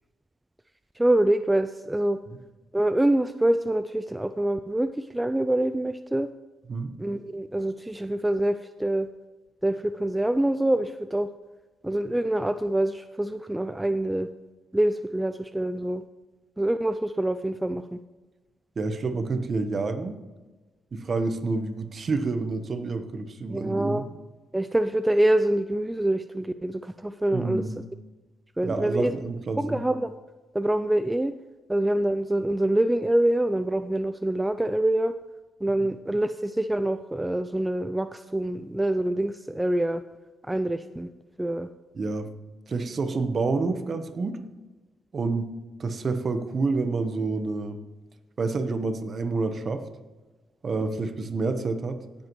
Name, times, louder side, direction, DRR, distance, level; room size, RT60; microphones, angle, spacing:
voice 1, 1.0-2.2 2.7-6.3 7.0-9.1 9.6-11.3 11.8-14.3 14.7-16.0 16.6-18.0 23.5-24.0 24.5-27.6 28.6-29.1 29.6-30.1 30.5-31.3 31.7-35.1 35.6-40.0 40.5-41.1 41.4-41.7, right 1 dB, 10° right, 10 dB, 0.3 m, -25 dB
voice 2, 18.8-20.2 20.9-24.0 27.3-27.7 28.6-29.8 35.8-35.9 41.9-42.3 42.7-44.4 45.1-45.5 45.8-47.8 48.4-49.8 50.6-52.0, right 3 dB, 40° right, 9 dB, 1.0 m, -28 dB
17.0 x 8.0 x 3.1 m, 1.2 s
cardioid pair, 90°, 0 cm